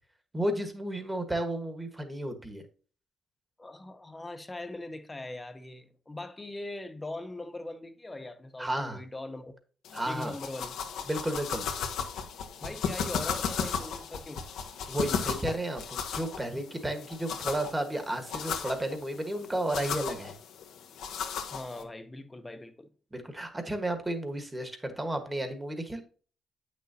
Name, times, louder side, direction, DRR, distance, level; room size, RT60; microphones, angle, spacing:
voice 1, 0.3-2.6 8.6-9.0 9.9-10.3 11.1-11.7 14.9-20.3 23.1-26.0, right 1 dB, 15° right, 1.4 m, -32 dB
voice 2, 3.6-9.5 10.1-10.8 12.6-14.4 21.5-22.9, left 2 dB, 20° left, 0.8 m, -41 dB
sound 1, 9.9-21.8, left 7 dB, 80° left, 1.0 m, -36 dB
8.6 x 6.3 x 2.8 m
cardioid pair, 90°, 0 cm